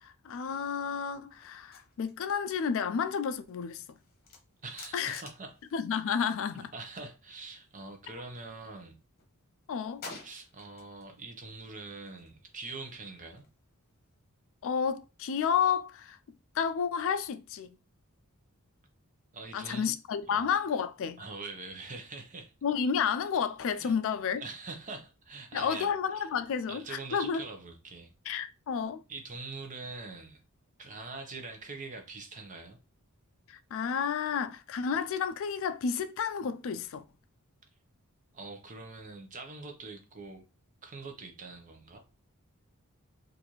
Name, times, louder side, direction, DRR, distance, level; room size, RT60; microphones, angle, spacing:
voice 1, 0.0-3.8 4.9-5.2 5.7-6.7 9.7-10.0 14.6-16.2 16.6-17.8 19.5-21.2 22.6-24.4 25.5-27.4 28.3-29.0 33.5-37.0, left 7 dB, 60° left, 0.4 m, -31 dB
sound 1, 1.4-6.7 7.0-8.6 9.0-11.1 11.4-14.2, left 3 dB, 45° left, 1.0 m, -53 dB
voice 2, 4.6-5.5 6.5-9.0 10.2-13.4 19.3-19.9 20.3-20.4 21.2-22.5 23.8-23.9 24.4-25.9 26.1-26.3 26.7-28.3 29.1-30.4 30.8-32.8 38.3-40.4 40.8-42.0, right 3 dB, 35° right, 0.8 m, -44 dB
4.0 x 2.6 x 3.0 m
head